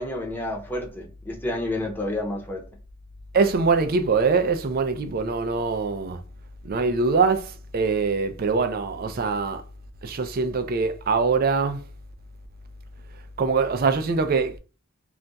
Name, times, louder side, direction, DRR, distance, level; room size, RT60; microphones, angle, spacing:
voice 1, 0.0-2.6, left 1 dB, 10° left, 0.7 m, -30 dB
voice 2, 3.3-6.2 6.6-7.5 7.7-9.6 10.0-11.8 13.4-14.6, right 4 dB, 45° right, 0.4 m, -23 dB
2.4 x 2.2 x 3.9 m
head